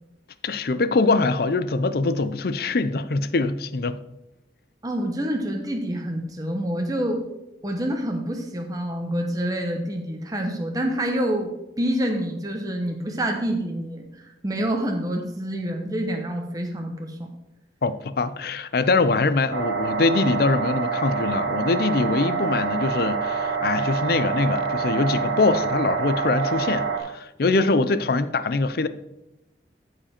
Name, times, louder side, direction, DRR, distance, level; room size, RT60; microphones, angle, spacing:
voice 1, 0.4-4.0 17.8-28.9, left 3 dB, 55° left, 0.5 m, -23 dB
voice 2, 4.8-7.2 7.6-11.5 11.8-17.3, right 1 dB, 20° right, 1.0 m, -27 dB
sound 1, 19.5-27.0, right 5 dB, 85° right, 2.0 m, -26 dB
13.5 x 4.9 x 4.4 m
head